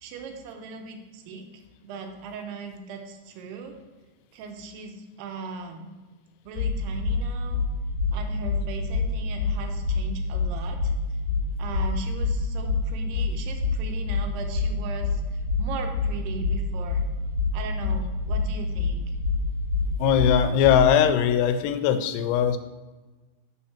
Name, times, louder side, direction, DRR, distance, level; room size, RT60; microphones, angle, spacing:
voice 1, 0.0-3.8 4.3-5.9 6.4-7.6 8.1-10.9 11.6-17.1 17.5-19.2, right 4 dB, 85° right, 4 dB, 2.8 m, -38 dB
sound 1, 6.6-21.0, left 4 dB, 65° left, 2.5 m, -26 dB
voice 2, 20.0-22.6, left 9 dB, 90° left, 9 dB, 2.7 m, -20 dB
6.3 x 4.2 x 5.8 m, 1.2 s
omnidirectional pair, 4.7 m